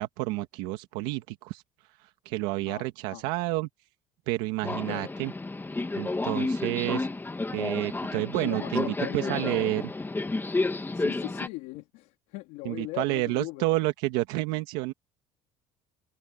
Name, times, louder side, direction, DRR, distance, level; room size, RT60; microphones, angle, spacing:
voice 1, 0.0-1.6 2.2-3.7 4.3-5.3 6.0-7.1 7.5-9.8 12.6-14.9, right 19 dB, 90° right, 1.8 m, -29 dB
voice 2, 2.6-3.2 4.7-5.1 8.4-9.7 10.9-13.7, left 20 dB, 85° left, 3.5 m, -39 dB
Subway metro underground, 4.6-11.5, left 2 dB, 15° left, 1.8 m, -31 dB
cardioid pair, 100°, 14 cm